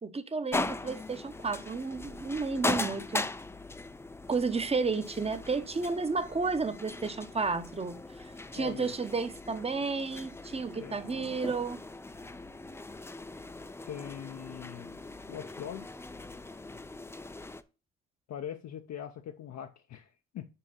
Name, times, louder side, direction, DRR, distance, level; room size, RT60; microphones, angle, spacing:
voice 1, 0.0-3.2 4.3-8.0 8.2-11.8, right 4 dB, 20° right, 0.8 m, -32 dB
sound 1, 0.5-17.6, left 2 dB, 10° left, 0.4 m, -39 dB
voice 2, 8.6-8.9 10.8-11.4 13.9-15.0 15.3-16.0 18.3-20.5, left 10 dB, 65° left, 0.6 m, -42 dB
5.5 x 4.8 x 5.5 m
cardioid pair, 90°, 30 cm